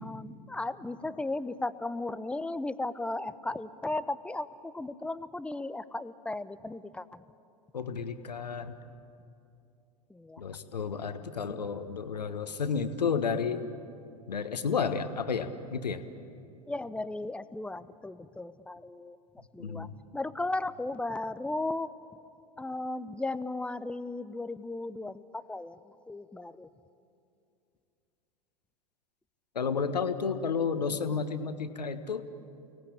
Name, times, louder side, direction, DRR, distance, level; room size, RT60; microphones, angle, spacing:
voice 1, 0.0-7.2 10.1-10.4 11.4-11.7 16.7-19.2 19.5-19.9 20.1-21.9 22.6-26.7 30.5-30.8, left 2 dB, 5° left, 15 dB, 0.7 m, -36 dB
voice 2, 7.7-8.7 10.4-13.6 14.3-16.0 19.6-19.9 29.5-32.3, left 5 dB, 80° left, 9 dB, 1.4 m, -31 dB
29.5 x 18.5 x 8.6 m, 2.7 s
figure-of-eight pair, 85°, 21 cm